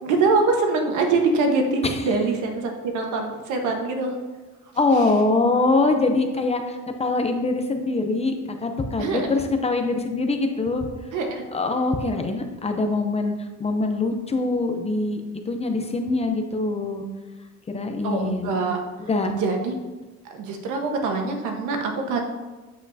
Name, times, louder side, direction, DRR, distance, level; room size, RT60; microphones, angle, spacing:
voice 1, 0.0-4.2 9.0-9.4 11.1-11.4 18.0-18.8 19.3-19.8 20.2-22.2, right 3 dB, 85° right, 3 dB, 1.3 m, -24 dB
voice 2, 4.7-8.3 8.6-10.9 11.5-17.0 17.7-18.6 19.0-19.3, left 3 dB, 20° left, 5 dB, 0.6 m, -23 dB
8.5 x 7.6 x 2.7 m, 1.2 s
cardioid pair, 145°, 30 cm